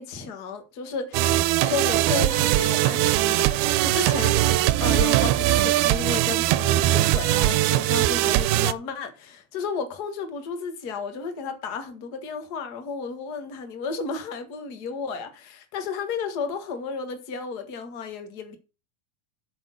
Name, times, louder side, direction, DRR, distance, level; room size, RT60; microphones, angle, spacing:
voice 1, 0.0-18.6, left 5 dB, 50° left, 1.2 m, -33 dB
sound 1, 1.1-8.7, right 15 dB, 90° right, 2.5 m, -21 dB
7.9 x 6.5 x 6.2 m
omnidirectional pair, 4.3 m